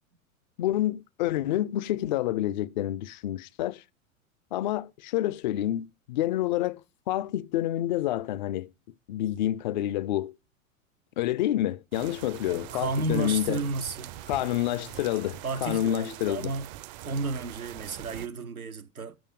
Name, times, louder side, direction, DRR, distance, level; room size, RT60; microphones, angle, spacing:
voice 1, 0.6-3.8 4.5-8.7 9.1-10.3 11.2-13.6 14.3-16.5, left 13 dB, 35° left, 0.4 m, -28 dB
sound 1, 11.9-18.3, right 13 dB, 35° right, 0.5 m, -43 dB
voice 2, 12.5-14.1 15.4-16.7 17.0-19.2, right 3 dB, 90° right, 0.7 m, -32 dB
7.7 x 6.7 x 5.2 m
figure-of-eight pair, 90°, 42 cm